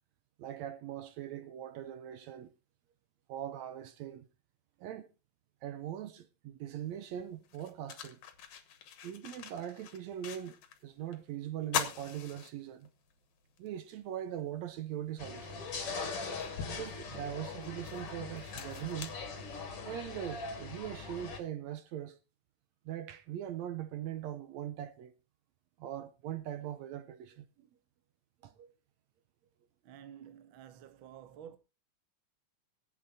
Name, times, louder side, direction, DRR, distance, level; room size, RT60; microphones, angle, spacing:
voice 1, 0.4-2.5 3.3-4.3 4.8-5.1 5.6-8.2 9.0-10.6 10.8-12.9 13.6-15.6 16.7-19.2 19.8-22.2 22.9-25.1 25.8-27.5 28.4-28.7, right 11 dB, 75° right, 1.9 m, -41 dB
sound 1, 6.8-6.9 7.4-10.8 11.1-11.2 11.6-13.1 13.6-13.7 15.1-15.2 15.8-20.0, left 9 dB, 80° left, 2.6 m, -42 dB
sound 2, 15.2-21.4, left 4 dB, 50° left, 3.0 m, -41 dB
voice 2, 29.8-31.6, right 9 dB, 60° right, 1.5 m, -51 dB
23.5 x 8.5 x 2.7 m
omnidirectional pair, 3.3 m